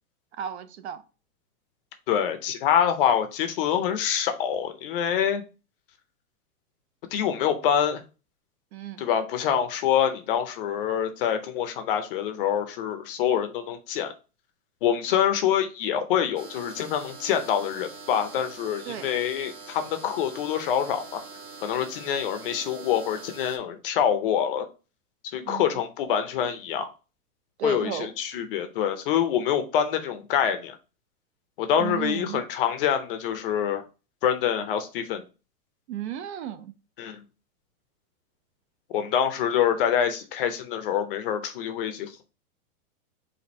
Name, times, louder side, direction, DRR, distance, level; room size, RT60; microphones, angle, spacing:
voice 1, 0.4-1.0 8.7-9.0 18.9-19.1 25.4-25.7 27.6-28.1 31.8-32.4 35.9-36.7, right 10 dB, 50° right, 0.4 m, -34 dB
voice 2, 2.1-5.4 7.1-8.0 9.0-14.1 14.8-21.2 21.6-24.7 25.3-26.9 27.6-30.8 31.6-33.8 34.2-35.2 37.0-37.2 38.9-42.2, left 9 dB, 40° left, 0.6 m, -26 dB
sound 1, 16.4-23.6, right 4 dB, 85° right, 1.7 m, -44 dB
4.2 x 2.6 x 4.1 m
supercardioid pair, 150°, 45 cm